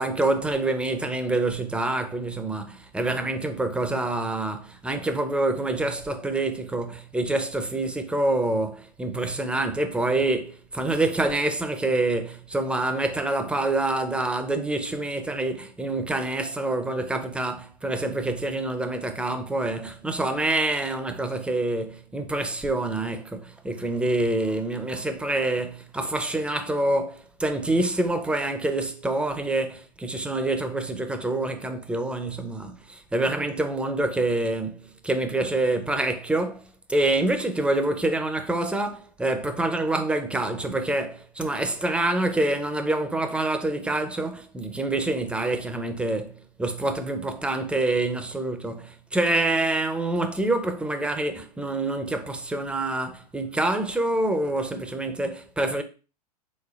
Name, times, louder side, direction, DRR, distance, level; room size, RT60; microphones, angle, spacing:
voice 1, 0.0-55.8, right 2 dB, 5° right, 0.6 m, -26 dB
5.1 x 3.8 x 2.4 m
hypercardioid pair, 110°, 20 cm